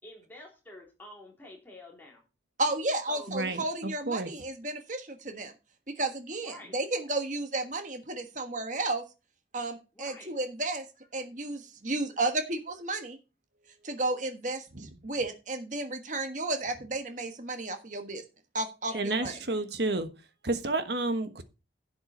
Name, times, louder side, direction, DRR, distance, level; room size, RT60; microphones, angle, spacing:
voice 1, 0.0-2.3 3.1-3.4 6.4-6.8 9.9-10.3 18.9-19.6, left 2 dB, 10° left, 3.5 m, -49 dB
voice 2, 2.6-5.5 5.9-9.0 9.5-10.8 11.1-13.2 13.8-18.2 18.5-19.3, right 2 dB, 45° right, 1.5 m, -33 dB
voice 3, 3.3-3.6 4.1-4.3 14.8-14.9 18.9-20.1 20.4-21.4, right 2 dB, 65° right, 1.3 m, -30 dB
11.0 x 7.9 x 4.4 m
head